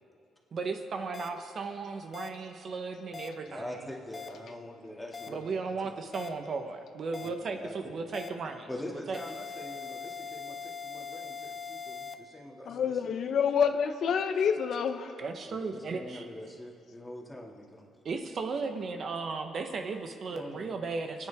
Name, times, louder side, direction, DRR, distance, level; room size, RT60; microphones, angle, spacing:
voice 1, 0.5-3.9 5.3-9.2 15.2-16.3 18.0-21.3, right 4 dB, 55° right, 6 dB, 1.1 m, -36 dB
sound 1, 1.1-1.3 2.1-2.3 3.1-3.3 4.1-4.3 5.1-5.3 6.1-6.3 7.1-7.3 8.1-8.3 9.1-12.1, left 5 dB, 30° left, 1.0 m, -41 dB
voice 2, 3.4-5.9 7.2-8.0 8.7-13.0 15.5-17.9 20.3-20.8, left 1 dB, 10° left, -2 dB, 2.4 m, -44 dB
voice 3, 12.7-15.2, left 7 dB, 65° left, 8 dB, 0.7 m, -28 dB
27.0 x 9.8 x 3.6 m, 2.4 s
cardioid pair, 90°, 0 cm